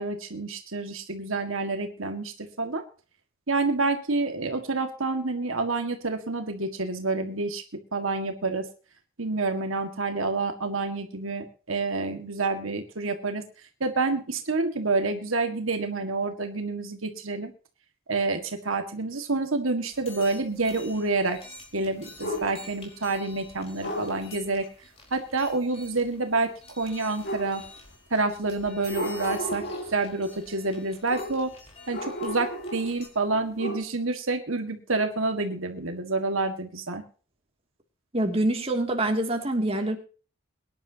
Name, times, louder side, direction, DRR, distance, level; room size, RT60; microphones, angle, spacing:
voice 1, 0.0-2.8 3.5-7.6 7.9-8.7 9.2-13.4 13.8-17.5 18.1-21.4 21.7-24.7 25.1-27.6 28.1-31.5 31.9-37.0, right 3 dB, 75° right, 5 dB, 1.9 m, -28 dB
sound 1, 19.9-33.1, left 3 dB, 30° left, 4.5 m, -49 dB
sound 2, 22.2-22.8 23.8-24.2 27.2-27.9 28.8-30.0 31.1-31.5 31.9-33.0 33.3-33.8, left 1 dB, 55° left, 3.2 m, -34 dB
voice 2, 38.1-40.0, right 1 dB, 30° right, 2 dB, 2.6 m, -25 dB
23.0 x 10.5 x 2.9 m, 0.36 s
head